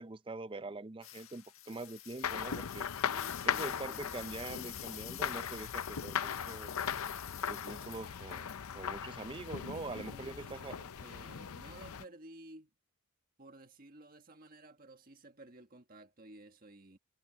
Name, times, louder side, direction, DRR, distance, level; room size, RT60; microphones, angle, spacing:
voice 1, 0.0-2.9 3.4-6.7 7.5-8.5 8.7-10.8, right 3 dB, 25° right, 0.5 m, -44 dB
sound 1, 1.0-8.8 9.2-10.5 11.1-11.2, left 14 dB, 70° left, 1.7 m, -49 dB
sound 2, 2.2-12.0, left 7 dB, 90° left, 0.6 m, -39 dB
voice 2, 3.1-4.4 9.7-12.7 13.4-17.0, right 2 dB, 40° right, 1.6 m, -55 dB
head